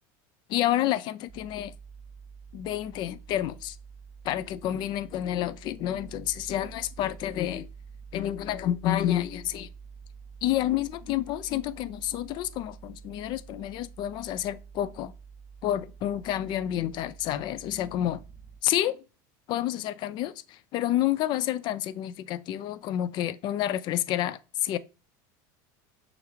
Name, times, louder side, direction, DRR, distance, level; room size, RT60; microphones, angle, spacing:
voice 1, 0.5-1.7 2.5-3.8 4.2-7.7 8.1-9.7 10.4-15.1 15.6-18.2 18.6-19.0 19.5-24.8, left 12 dB, 50° left, 0.4 m, -29 dB
sound 1, 1.3-18.6, right 6 dB, 15° right, 0.6 m, -48 dB
6.3 x 2.5 x 3.1 m
supercardioid pair, 120°, 10 cm